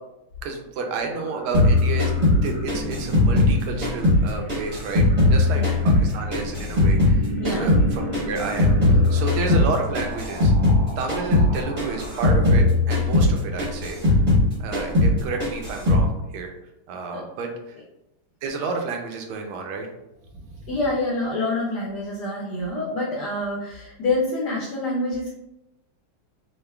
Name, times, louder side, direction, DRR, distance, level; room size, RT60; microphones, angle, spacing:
voice 1, 0.4-2.1 2.4-5.0 5.3-10.5 11.0-14.2 14.6-16.5 16.9-17.8 18.4-19.9, right 4 dB, 85° right, 3 dB, 1.5 m, -31 dB
sound 1, 1.1-12.3, equal, 70° right, 1.0 m, -35 dB
sound 2, 1.5-4.2 4.5-7.2 7.4-10.8 11.1-11.5 11.8-14.5 14.7-15.1 15.4-16.1, left 2 dB, 35° right, 0.7 m, -19 dB
voice 2, 7.4-7.7 17.1-17.2 20.7-25.3, left 2 dB, 65° left, -5 dB, 1.0 m, -26 dB
5.3 x 2.1 x 2.2 m, 0.91 s
omnidirectional pair, 2.4 m